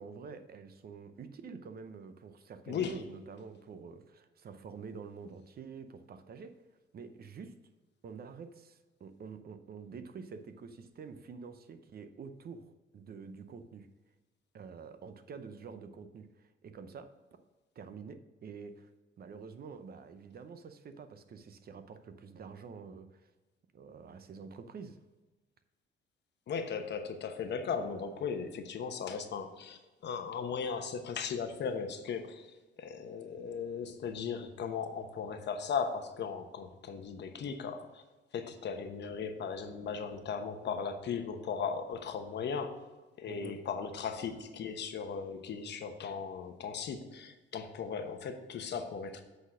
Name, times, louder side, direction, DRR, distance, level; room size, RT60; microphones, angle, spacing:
voice 1, 0.0-6.5 6.9-7.5 8.0-13.9 14.5-17.1 17.8-18.9 19.2-23.3 23.7-25.0 43.3-43.5, right 5 dB, 50° right, 9 dB, 0.7 m, -47 dB
voice 2, 2.7-3.0 26.5-32.5 32.8-38.0 38.3-42.8 43.2-49.2, left 6 dB, 60° left, 7 dB, 1.0 m, -37 dB
7.9 x 4.2 x 6.2 m, 1.2 s
cardioid pair, 90°, 20 cm